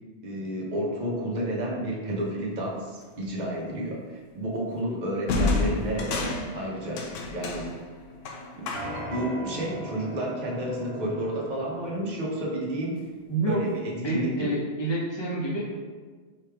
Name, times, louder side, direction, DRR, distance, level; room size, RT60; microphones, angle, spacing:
voice 1, 0.2-6.3 6.5-7.0 7.3-7.7 8.6-8.7 9.1-13.0 13.4-14.3, right 1 dB, 40° right, -3 dB, 0.9 m, -31 dB
sound 1, 3.2-3.5 5.3-9.2, left 3 dB, 75° left, 1.0 m, -30 dB
sound 2, 5.7-11.9, right 1 dB, 80° right, 1.1 m, -41 dB
voice 2, 13.3-13.6 14.0-15.6, right 2 dB, 20° left, -6 dB, 1.0 m, -28 dB
4.7 x 3.2 x 3.4 m, 1.5 s
omnidirectional pair, 1.3 m